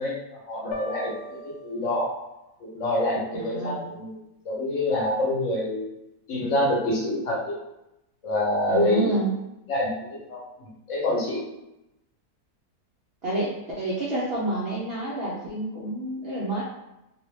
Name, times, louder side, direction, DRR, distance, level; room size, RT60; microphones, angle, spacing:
voice 1, 0.0-2.1 2.6-4.2 4.4-5.9 6.3-7.6 8.2-9.1 9.7-9.9 10.3-11.4, left 1 dB, 60° left, -4 dB, 1.0 m, -26 dB
sound 1, 0.7-2.6, equal, 90° left, 1.1 m, -39 dB
voice 2, 3.3-3.9 8.7-9.3 13.2-16.6, right 2 dB, 70° right, -6 dB, 0.5 m, -29 dB
2.5 x 2.1 x 3.2 m, 0.91 s
omnidirectional pair, 1.7 m